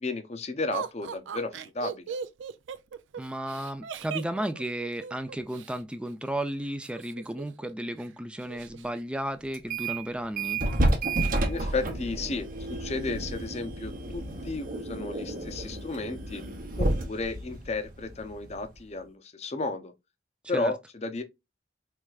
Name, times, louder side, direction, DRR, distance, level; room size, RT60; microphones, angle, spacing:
voice 1, 0.0-2.2 11.5-16.4 16.8-19.9 20.5-21.2, left 3 dB, 35° left, 0.6 m, -33 dB
Laughter, 0.7-5.8 6.8-7.7 8.0-8.1 8.4-8.9, right 7 dB, 90° right, 0.4 m, -38 dB
voice 2, 3.2-10.6 20.5-20.7, right 1 dB, 5° right, 0.4 m, -34 dB
sound 1, 9.5-10.0 10.4-18.8, right 2 dB, 50° right, 0.8 m, -31 dB
4.7 x 3.3 x 2.3 m
head